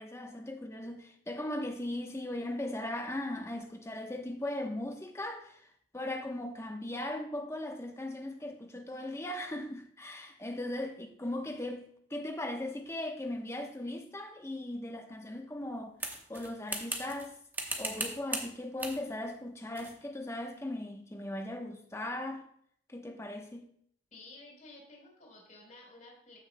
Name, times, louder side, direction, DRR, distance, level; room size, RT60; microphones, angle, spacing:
voice 1, 0.0-5.6 5.9-16.0 16.3-17.3 17.8-22.4 22.9-23.7, left 1 dB, 15° left, 0.9 m, -38 dB
sound 1, 16.0-17.3 17.5-18.5 18.8-19.0 19.8-20.0, right 2 dB, 10° right, 1.0 m, -37 dB
voice 2, 24.1-26.4, left 2 dB, 45° left, 3.9 m, -53 dB
14.5 x 6.4 x 2.2 m
head